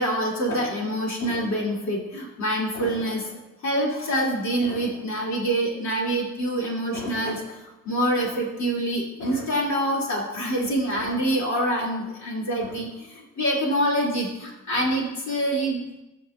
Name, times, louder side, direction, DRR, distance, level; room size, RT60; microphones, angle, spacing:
voice 1, 0.0-16.0, right 1 dB, 65° left, -3 dB, 3.0 m, -26 dB
14.0 x 6.0 x 2.6 m, 0.97 s
cardioid pair, 90°, 30 cm